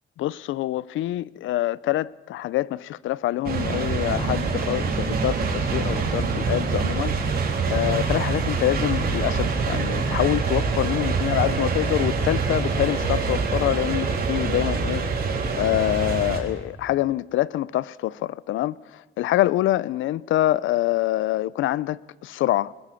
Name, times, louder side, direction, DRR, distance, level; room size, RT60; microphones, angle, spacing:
voice 1, 0.2-15.0 15.6-22.9, left 15 dB, 85° left, 0.6 m, -25 dB
sound 1, 3.4-16.4, right 4 dB, 50° right, 3.5 m, -25 dB
20.5 x 20.0 x 7.0 m
cardioid pair, 155°, 20 cm